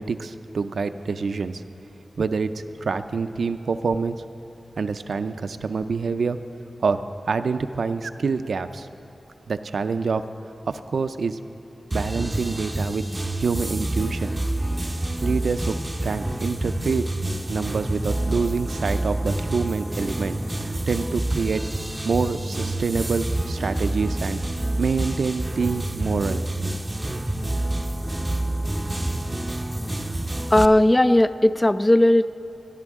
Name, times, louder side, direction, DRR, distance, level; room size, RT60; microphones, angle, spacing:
voice 1, 0.0-1.6 2.2-2.5 2.8-4.2 4.8-6.4 6.8-8.9 9.5-10.2 10.7-11.4 11.9-13.0 13.4-14.3 15.2-15.7 16.0-17.1 17.5-21.7 22.0-24.4 24.8-26.4, right 5 dB, 90° right, 10 dB, 0.4 m, -26 dB
sound 1, 11.9-30.7, right 1 dB, 20° right, 0.6 m, -28 dB
voice 2, 30.5-32.3, left 1 dB, 25° left, 13 dB, 0.3 m, -17 dB
18.5 x 13.0 x 3.6 m, 2.9 s
cardioid pair, 55°, 0 cm